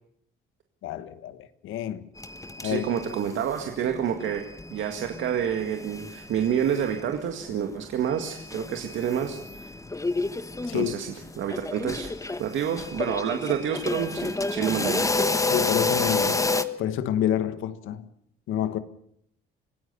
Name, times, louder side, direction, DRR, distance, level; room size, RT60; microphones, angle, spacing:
voice 1, 0.8-2.1 2.6-2.8 10.7-10.9 15.5-16.4 16.8-18.0 18.5-18.8, left 10 dB, 85° left, 1.5 m, -28 dB
sound 1, 2.2-3.6 3.8-7.1 7.4-7.5 8.0-16.6, left 3 dB, 15° left, 1.3 m, -30 dB
voice 2, 2.6-4.4 4.7-9.4 10.7-12.1 12.4-15.1, right 8 dB, 75° right, 2.0 m, -28 dB
26.0 x 16.5 x 6.9 m
cardioid pair, 90°, 20 cm